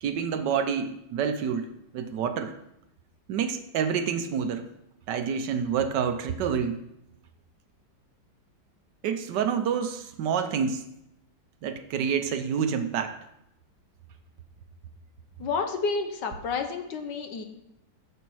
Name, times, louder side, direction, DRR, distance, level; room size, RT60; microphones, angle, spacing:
voice 1, 0.0-1.7 1.9-2.5 3.3-4.7 5.1-6.8 9.0-10.9 11.6-13.2, right 7 dB, 70° right, 8 dB, 1.3 m, -28 dB
voice 2, 15.4-17.4, left 4 dB, 70° left, 6 dB, 1.5 m, -30 dB
8.2 x 6.9 x 4.7 m, 0.82 s
omnidirectional pair, 2.0 m